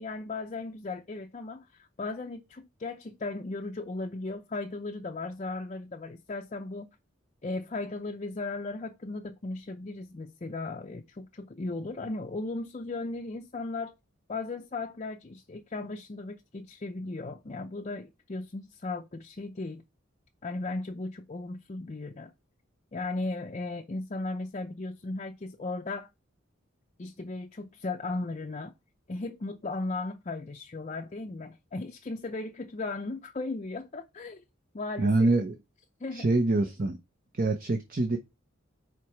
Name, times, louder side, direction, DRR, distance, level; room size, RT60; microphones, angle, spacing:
voice 1, 0.0-7.0 7.4-13.9 14.3-19.8 20.4-22.3 22.9-26.1 27.0-28.7 29.1-34.4 34.7-35.3 36.0-36.3, left 3 dB, 35° left, 0.5 m, -36 dB
voice 2, 35.0-35.5 36.1-37.0 37.3-38.2, right 2 dB, 45° right, 0.8 m, -25 dB
4.9 x 4.6 x 5.7 m
head